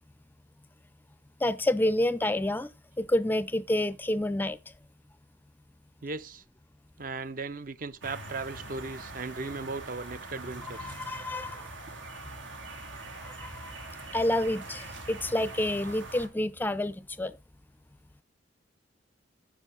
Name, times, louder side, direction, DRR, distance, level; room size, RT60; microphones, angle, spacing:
voice 1, 1.4-2.7 3.0-4.6 10.8-11.7 13.2-13.7 14.1-17.4, left 1 dB, 10° left, 0.4 m, -28 dB
voice 2, 6.0-6.4 7.0-10.9, right 3 dB, 45° right, 0.6 m, -37 dB
sound 1, 8.0-16.3, right 2 dB, 85° right, 2.8 m, -43 dB
10.0 x 5.8 x 4.7 m
head